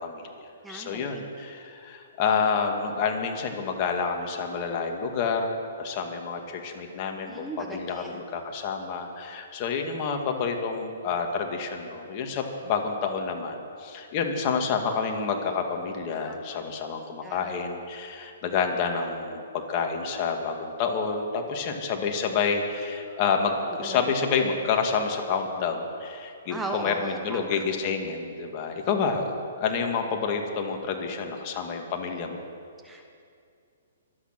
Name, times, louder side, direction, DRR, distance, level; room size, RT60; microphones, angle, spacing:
voice 1, 0.0-23.5 23.8-32.5, left 5 dB, 40° left, 3 dB, 2.2 m, -29 dB
voice 2, 0.6-1.2 7.3-8.2 16.2-16.6 17.2-17.5 23.1-23.2 23.8-24.1 26.5-27.5 32.8-33.1, right 2 dB, 5° right, 2 dB, 1.2 m, -37 dB
24.0 x 8.9 x 6.1 m, 2.4 s
hypercardioid pair, 135°, 0 cm